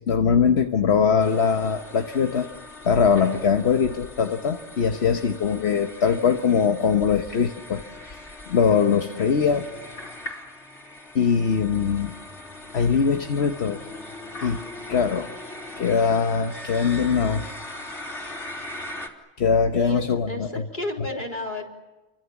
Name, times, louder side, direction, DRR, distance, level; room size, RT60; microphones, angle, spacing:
voice 1, 0.1-2.5 2.8-8.2 8.5-9.7 11.1-12.1 12.7-14.1 14.4-14.6 14.9-15.3 15.8-17.5 19.4-20.5 21.1-21.2, left 6 dB, 70° left, 6 dB, 1.4 m, -22 dB
sound 1, 1.2-19.1, left 1 dB, 90° left, 3.7 m, -40 dB
voice 2, 19.7-21.6, left 1 dB, 45° left, 0 dB, 4.1 m, -32 dB
30.0 x 24.5 x 7.2 m, 1.1 s
omnidirectional pair, 1.2 m